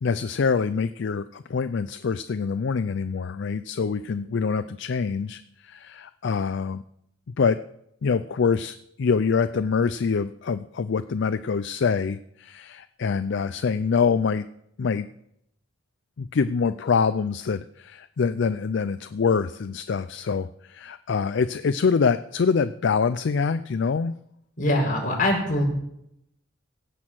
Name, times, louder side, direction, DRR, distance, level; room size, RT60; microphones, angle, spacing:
voice 1, 0.0-6.8 7.4-7.6 8.0-14.4 14.8-15.1 16.2-24.1, left 5 dB, 65° left, 13 dB, 0.4 m, -25 dB
voice 2, 24.6-25.6, left 1 dB, 45° left, -1 dB, 5.0 m, -23 dB
17.0 x 6.3 x 7.7 m, 0.77 s
head